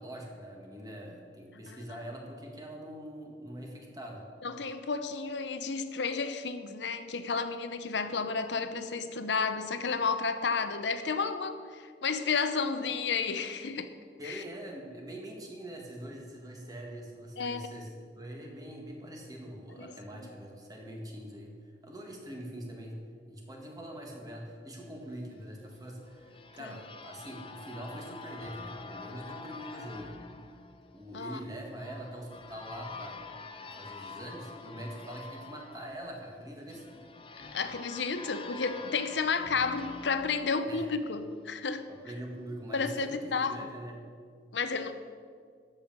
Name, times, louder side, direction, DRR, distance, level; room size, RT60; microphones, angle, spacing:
voice 1, 0.0-4.2 14.2-21.5 21.8-23.0 23.3-30.1 30.9-33.2 33.6-37.0 40.7-40.8 41.9-44.0, right 1 dB, 20° right, 0 dB, 1.8 m, -43 dB
voice 2, 4.4-13.9 14.2-14.4 17.4-17.7 19.8-19.9 26.6-26.7 31.1-31.4 37.5-41.9 42.7-43.6 44.5-44.9, left 5 dB, 80° left, 10 dB, 0.7 m, -32 dB
sound 1, 25.7-41.4, left 4 dB, 30° left, 0.7 m, -47 dB
13.0 x 5.6 x 7.5 m, 2.1 s
head